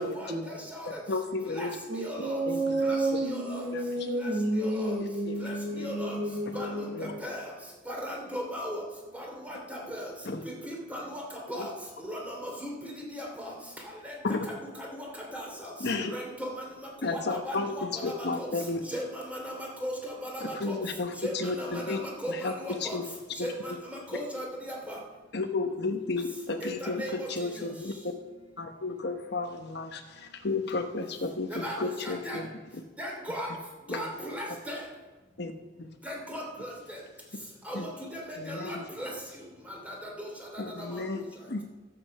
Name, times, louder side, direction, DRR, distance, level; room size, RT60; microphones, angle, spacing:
voice 1, 0.0-0.5 1.9-7.2, right 1 dB, 65° right, 0 dB, 2.0 m, -31 dB
voice 2, 1.1-1.8 2.5-2.7 3.1-3.2 3.7-3.8 5.3-5.4 5.8-5.9 6.9-7.1 10.2-10.4 11.6-11.7 14.2-14.5 15.8-16.1 17.0-18.8 20.4-22.0 22.3-23.0 23.4-23.5 25.3-28.1 28.6-32.5 33.9-34.1 35.4-35.5 35.8-35.9 37.7-37.9 38.4-38.9 40.6-41.6, left 3 dB, 60° left, 5 dB, 1.0 m, -33 dB
voice 3, 5.8-6.2 6.5-6.7 7.2-7.4 7.9-8.8 9.1-10.0 10.9-11.0 11.5-11.7 12.1-12.7 13.2-13.3 14.0-14.1 15.3-15.4 16.1-16.5 17.1-17.8 18.4-18.5 18.9-19.5 19.8-20.8 21.2-23.0 23.4-23.5 24.1-25.0 26.8-27.3 31.5-31.8 32.0-32.4 33.0-33.5 33.9-34.8 36.1-36.4 37.7-37.8 38.1-39.1 39.9-40.3, equal, 10° right, -1 dB, 2.7 m, -36 dB
12.0 x 7.8 x 6.5 m, 1.2 s
head